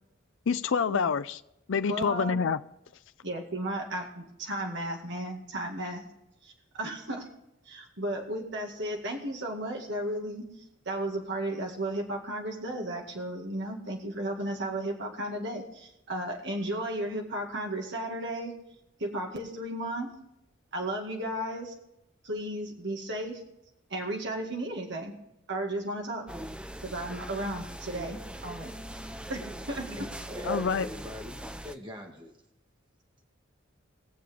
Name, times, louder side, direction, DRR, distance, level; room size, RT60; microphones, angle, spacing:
voice 1, 0.5-1.4 1.7-2.6 30.4-30.9, left 6 dB, 70° left, 11 dB, 0.5 m, -27 dB
voice 2, 1.9-2.4 3.2-6.0 6.4-7.3 7.7-10.5 10.9-18.5 19.0-20.1 20.7-21.7 22.2-23.4 23.9-25.1 25.5-26.2 26.8-28.7 29.3-29.9, right 1 dB, 65° right, 1 dB, 2.0 m, -34 dB
sound 1, 26.3-31.7, right 1 dB, 5° right, 0.6 m, -40 dB
voice 3, 28.5-29.3 29.5-32.3, left 1 dB, 25° right, 1 dB, 1.8 m, -45 dB
21.0 x 7.5 x 3.6 m, 0.86 s
head